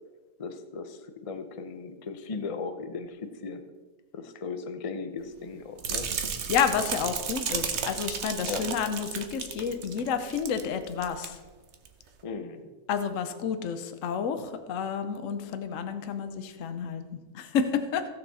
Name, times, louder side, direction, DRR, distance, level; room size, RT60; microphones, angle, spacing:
voice 1, 0.4-3.7 4.1-6.1 8.5-8.7 12.2-12.6, left 4 dB, 35° left, 8 dB, 0.5 m, -37 dB
sound 1, 5.8-10.7 10.9-11.3 11.7-11.9, right 6 dB, 55° right, 1.0 m, -33 dB
voice 2, 6.5-11.4 12.9-18.1, left 7 dB, 60° left, 8 dB, 1.1 m, -30 dB
16.0 x 6.4 x 4.1 m, 1.3 s
omnidirectional pair, 1.6 m